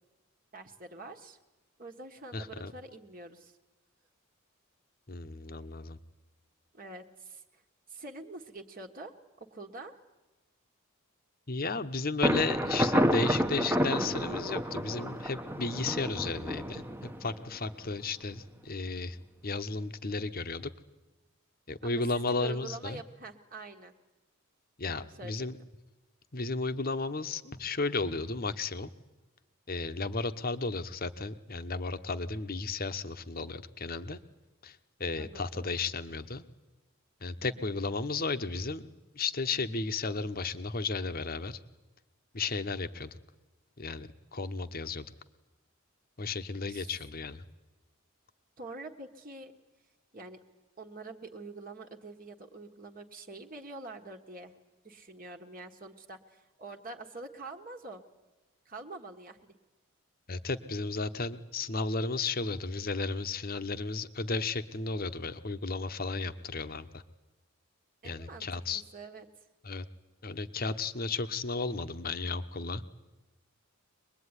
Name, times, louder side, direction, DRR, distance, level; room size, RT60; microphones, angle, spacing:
voice 1, 0.5-1.4 1.8-3.6 6.7-7.6 7.9-9.1 9.4-10.0 21.8-23.9 24.8-25.5 35.2-35.6 37.4-37.8 46.7-47.0 48.6-49.5 50.1-50.4 50.8-54.5 54.8-58.0 58.6-59.5 68.0-69.3, right 3 dB, 40° right, 2 dB, 1.5 m, -46 dB
voice 2, 2.3-2.7 5.1-6.0 11.5-19.2 19.4-20.7 21.7-23.0 24.8-25.6 26.3-28.9 29.7-34.2 34.6-36.4 37.2-41.6 42.3-43.2 43.8-45.0 46.2-47.4 60.3-67.0 68.0-68.8 69.6-69.9 70.2-72.8, left 3 dB, 45° left, 11 dB, 1.1 m, -34 dB
Thunder, 12.2-17.9, equal, 10° right, 1.0 m, -30 dB
24.0 x 21.0 x 9.8 m, 1.1 s
head